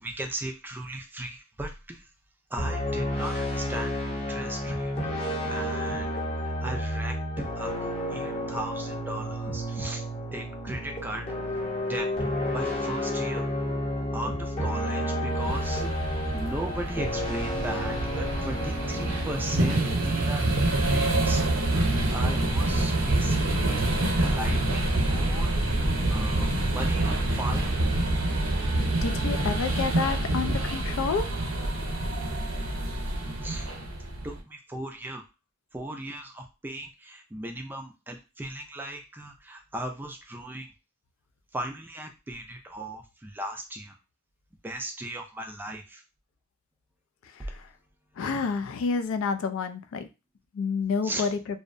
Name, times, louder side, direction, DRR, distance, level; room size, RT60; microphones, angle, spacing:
voice 1, 0.0-2.1 2.5-6.1 6.6-10.0 10.3-11.3 11.9-12.1 12.5-13.4 14.1-16.0 16.3-19.8 20.0-21.7 22.1-23.9 24.3-25.7 26.1-27.7 33.4-33.7 34.2-35.2 35.7-40.7 41.5-44.0 44.6-46.0 47.4-47.5 51.0-51.3, right 1 dB, 10° right, 4 dB, 0.3 m, -37 dB
sound 1, 2.6-21.7, equal, 30° left, 0.7 m, -31 dB
sound 2, 15.3-34.4, right 1 dB, 85° right, 0.7 m, -27 dB
voice 2, 29.0-31.3 47.4-47.7 48.2-50.1 50.5-51.4, left 5 dB, 80° left, 10 dB, 0.3 m, -29 dB
2.6 x 2.0 x 2.5 m, 0.28 s
head